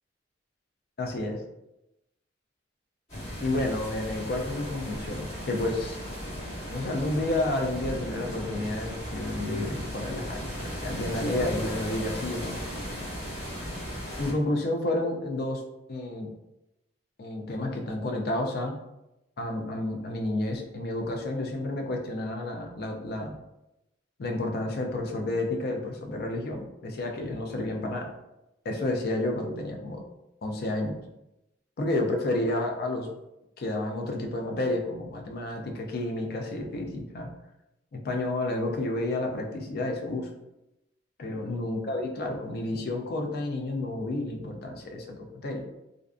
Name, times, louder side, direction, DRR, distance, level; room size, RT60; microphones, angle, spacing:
voice 1, 1.0-1.4 3.4-6.0 6.7-12.6 14.2-15.6 15.9-16.3 17.2-18.8 19.4-23.3 24.2-28.1 28.6-30.0 30.4-31.0 31.8-33.1 33.6-37.3 37.9-40.3 41.2-45.6, left 2 dB, 55° left, 3 dB, 0.4 m, -30 dB
sound 1, 3.1-14.3, equal, 35° left, 1.3 m, -36 dB
2.5 x 2.4 x 2.2 m, 0.91 s
head